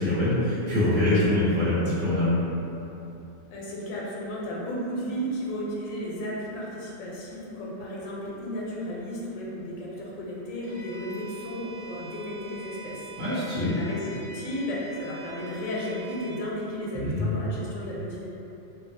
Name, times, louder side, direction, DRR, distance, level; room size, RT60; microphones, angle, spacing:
voice 1, 0.0-2.3 13.2-13.7 16.9-17.5, left 1 dB, 40° right, -13 dB, 1.1 m, -24 dB
voice 2, 3.5-18.3, equal, 90° left, -5 dB, 1.0 m, -34 dB
Bowed string instrument, 10.6-16.4, right 2 dB, 25° left, 0.5 m, -44 dB
2.7 x 2.3 x 2.6 m, 3.0 s
omnidirectional pair, 1.4 m